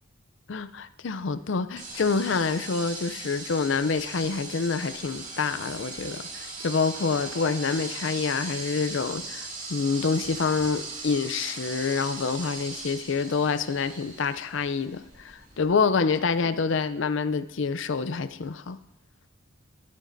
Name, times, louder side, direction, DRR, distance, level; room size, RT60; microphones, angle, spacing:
voice 1, 0.5-18.8, left 5 dB, 65° left, 14 dB, 0.5 m, -27 dB
sound 1, 1.8-15.7, right 3 dB, 40° right, 2.6 m, -39 dB
20.0 x 9.2 x 2.7 m, 0.94 s
head